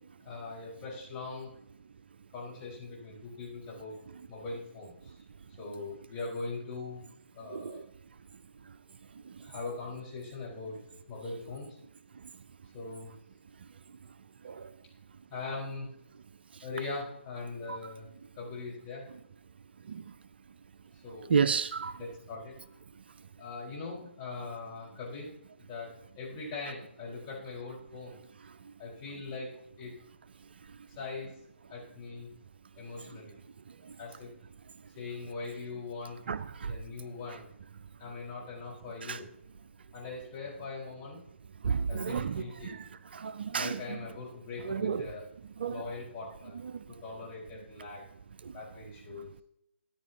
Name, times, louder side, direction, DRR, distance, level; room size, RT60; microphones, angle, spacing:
voice 1, 0.2-1.5 2.3-3.9 4.3-5.2 5.6-7.0 7.3-7.8 9.4-10.8 11.1-11.7 12.7-13.1 15.3-15.9 16.6-18.1 18.3-19.0 20.9-21.3 22.0-22.5 23.4-25.3 25.6-28.2 28.8-29.5 29.8-29.9 30.9-31.3 31.7-32.3 32.8-33.4 34.0-34.3 34.9-36.2 36.7-37.5 38.0-39.2 39.9-41.2 41.9-42.8 43.6-45.3 45.7-46.6 47.0-48.1 48.5-49.4, left 3 dB, 20° left, 4.8 m, -41 dB
voice 2, 21.3-21.9 36.3-36.7 39.1-39.2 41.6-42.8 43.1-43.8 44.6-45.1 45.6-45.8, right 6 dB, 55° right, 0.4 m, -31 dB
14.0 x 9.6 x 2.9 m
figure-of-eight pair, 140°, 7 cm